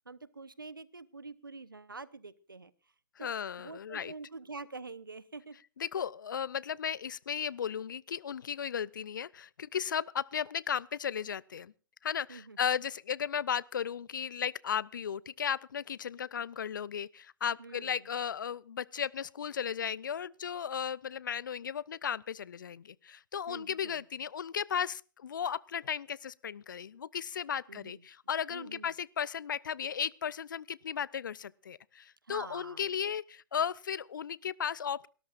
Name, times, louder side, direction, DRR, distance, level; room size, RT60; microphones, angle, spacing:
voice 1, 0.1-2.7 3.2-5.6 12.3-12.6 17.6-18.1 23.5-24.0 27.7-28.0 28.5-28.9 32.3-32.9, right 3 dB, 85° right, 0.9 m, -46 dB
voice 2, 3.2-4.1 5.8-11.7 12.0-35.1, left 8 dB, 70° left, 0.6 m, -35 dB
29.0 x 13.5 x 2.5 m
figure-of-eight pair, 110°, 11 cm